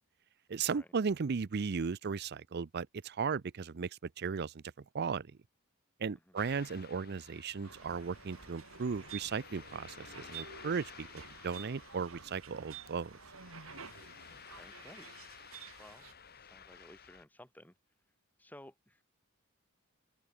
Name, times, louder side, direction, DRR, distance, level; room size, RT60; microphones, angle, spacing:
voice 1, 0.5-3.9 4.2-4.6 4.9-5.3 6.0-11.1 11.4-13.1, right 5 dB, 50° right, 0.5 m, -36 dB
Ocean, 6.4-17.2, left 7 dB, 50° left, 3.0 m, -54 dB
sound 1, 7.6-16.1, right 7 dB, 80° right, 3.5 m, -51 dB
voice 2, 14.3-15.1 15.8-17.7 18.4-19.0, left 1 dB, 10° left, 3.6 m, -56 dB
open air
head